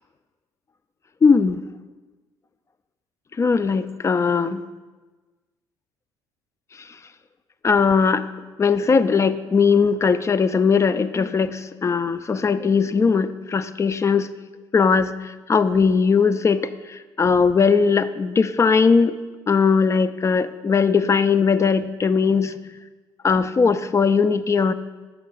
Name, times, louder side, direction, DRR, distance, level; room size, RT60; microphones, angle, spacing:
voice 1, 1.2-1.6 3.4-4.6 7.6-8.2 8.6-14.3 14.7-19.2 19.5-22.5 23.2-24.7, left 5 dB, 25° left, 12 dB, 0.3 m, -19 dB
6.1 x 5.5 x 3.9 m, 1.2 s
hypercardioid pair, 60°, 11 cm